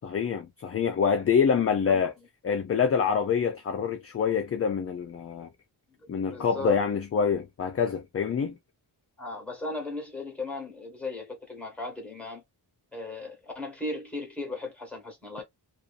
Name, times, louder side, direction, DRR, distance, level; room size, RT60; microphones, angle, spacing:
voice 1, 0.0-2.1 2.4-5.5 6.1-8.6, left 6 dB, 40° left, 0.4 m, -26 dB
voice 2, 6.3-6.8 8.4-8.5 9.2-12.4 12.9-15.4, left 2 dB, 5° left, 1.2 m, -36 dB
2.6 x 2.4 x 2.3 m
wide cardioid pair, 140°, 40 cm